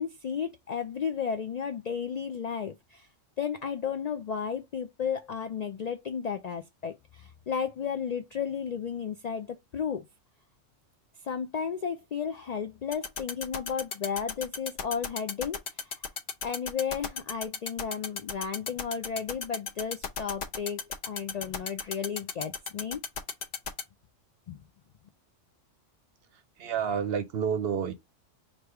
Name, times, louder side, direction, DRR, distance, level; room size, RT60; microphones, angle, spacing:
voice 1, 0.0-3.1 3.4-10.0 11.2-15.9 16.4-20.8 21.1-23.0 24.5-24.6, left 7 dB, 80° left, 0.3 m, -33 dB
sound 1, 12.9-23.8, left 6 dB, 60° left, 1.0 m, -33 dB
voice 2, 26.3-27.9, right 7 dB, 60° right, 0.8 m, -30 dB
3.3 x 2.6 x 4.4 m
omnidirectional pair, 1.3 m